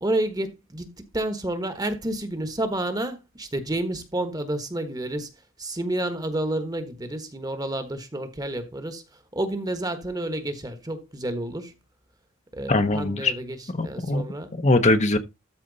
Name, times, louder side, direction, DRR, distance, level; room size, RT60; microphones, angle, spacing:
voice 1, 0.0-5.3 5.6-9.0 9.3-11.7 12.5-13.6 13.8-14.5, right 1 dB, 20° right, 1.3 m, -30 dB
voice 2, 12.7-13.3 13.7-14.2 14.5-15.2, left 2 dB, 35° left, 0.9 m, -21 dB
13.0 x 4.5 x 4.0 m
head